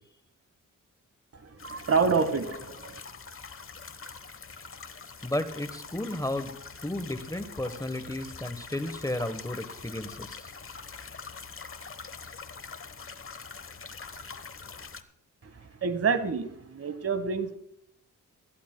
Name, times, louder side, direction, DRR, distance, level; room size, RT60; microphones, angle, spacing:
sound 1, 1.6-15.0, left 5 dB, 40° left, 1.1 m, -44 dB
voice 1, 1.6-3.0 15.8-17.6, right 5 dB, 45° right, 1.3 m, -27 dB
voice 2, 5.2-6.5 6.8-10.5, left 1 dB, 10° left, 1.1 m, -33 dB
20.0 x 14.0 x 2.2 m
cardioid pair, 65°, 32 cm